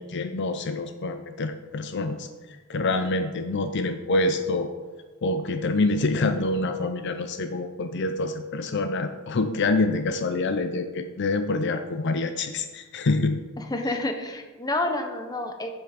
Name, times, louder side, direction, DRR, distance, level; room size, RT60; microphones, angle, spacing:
voice 1, 0.0-2.3 2.7-4.7 5.2-13.4 13.9-14.0, left 2 dB, 50° left, 8 dB, 0.5 m, -26 dB
voice 2, 13.6-15.7, left 2 dB, 15° left, 5 dB, 0.8 m, -29 dB
7.8 x 7.2 x 5.1 m, 1.3 s
head